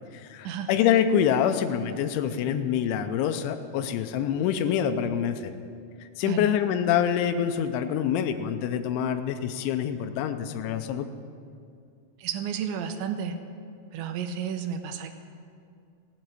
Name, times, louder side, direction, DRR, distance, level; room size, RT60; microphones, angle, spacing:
voice 1, 0.1-5.5 6.2-11.1, left 9 dB, 85° left, 9 dB, 3.1 m, -26 dB
voice 2, 12.2-13.4 13.9-15.1, right 7 dB, 80° right, 7 dB, 3.2 m, -32 dB
17.0 x 7.9 x 8.9 m, 2.4 s
omnidirectional pair, 5.3 m